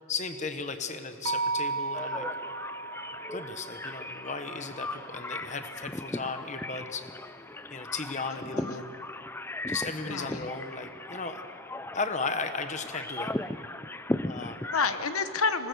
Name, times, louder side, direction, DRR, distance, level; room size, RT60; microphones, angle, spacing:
voice 1, 0.1-2.3 3.3-7.1 7.7-8.9 9.7-11.4 11.9-13.3 14.2-14.7, left 4 dB, 35° left, 8 dB, 1.1 m, -35 dB
sound 1, 1.3-5.5, right 3 dB, 70° right, 0.9 m, -35 dB
sound 2, 1.9-15.1, left 2 dB, 10° left, 0.4 m, -37 dB
voice 2, 8.3-8.8 10.1-10.5 14.7-15.7, left 5 dB, 75° left, 10 dB, 1.0 m, -30 dB
25.5 x 19.5 x 6.9 m, 3.0 s
head